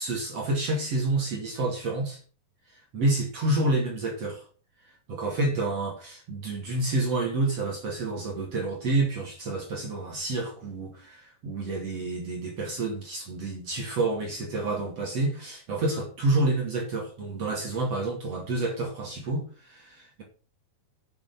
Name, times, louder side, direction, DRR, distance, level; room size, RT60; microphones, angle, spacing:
voice 1, 0.0-2.2 2.9-4.5 5.1-19.8, right 2 dB, 45° right, 3.6 m, -29 dB
9.0 x 7.1 x 7.1 m
omnidirectional pair, 4.0 m